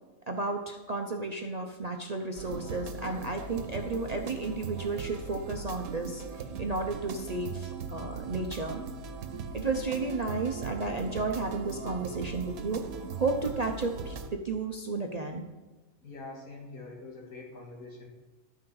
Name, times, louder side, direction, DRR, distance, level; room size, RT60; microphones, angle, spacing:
voice 1, 0.3-6.2 6.6-8.8 9.5-12.8 13.2-15.5, right 3 dB, 45° right, 3 dB, 0.5 m, -33 dB
sound 1, 2.4-14.3, right 5 dB, 90° right, 1.3 m, -39 dB
voice 2, 16.0-18.1, left 3 dB, 85° left, 0 dB, 2.3 m, -44 dB
12.0 x 6.1 x 4.7 m, 1.2 s
omnidirectional pair, 1.5 m